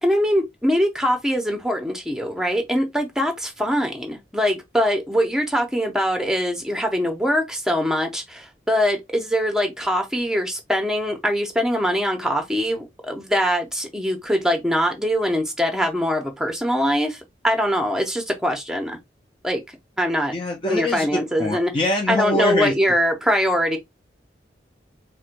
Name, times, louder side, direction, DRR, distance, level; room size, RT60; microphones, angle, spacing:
voice 1, 0.0-19.0 19.4-19.6 20.0-20.3 20.7-21.7 22.1-23.8, equal, 5° right, 0.7 m, -22 dB
voice 2, 20.3-21.1 21.4-22.7, left 1 dB, 30° left, 0.5 m, -24 dB
4.3 x 2.2 x 2.5 m
head